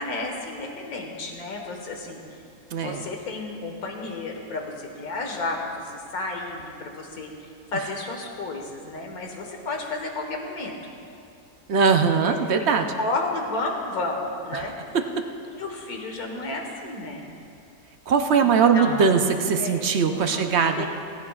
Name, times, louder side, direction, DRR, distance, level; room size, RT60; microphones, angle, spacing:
voice 1, 0.0-2.2 2.7-10.9 12.1-14.7 15.5-17.3 18.4-19.2 19.6-20.4 20.7-20.9, left 2 dB, 70° left, 2 dB, 1.9 m, -32 dB
voice 2, 2.7-3.0 11.7-12.9 14.9-15.0 18.1-20.9, right 5 dB, 55° right, 5 dB, 0.8 m, -20 dB
18.0 x 15.5 x 2.4 m, 2.5 s
omnidirectional pair, 1.7 m